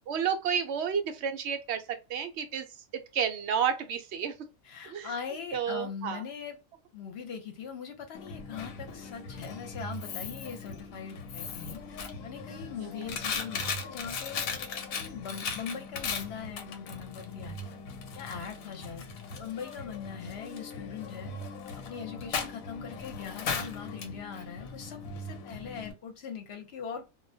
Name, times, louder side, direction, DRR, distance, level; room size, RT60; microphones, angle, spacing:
voice 1, 0.1-2.7 3.1-4.3 4.9-5.1 5.5-6.2 12.8-13.1, right 7 dB, 65° right, 0.7 m, -31 dB
voice 2, 4.6-6.6 6.9-17.6 18.1-19.0 19.4-21.3 21.7-27.1, left 7 dB, 55° left, 0.9 m, -41 dB
Coin (dropping), 8.1-25.9, left 5 dB, 85° left, 1.0 m, -38 dB
2.3 x 2.1 x 2.6 m
omnidirectional pair, 1.4 m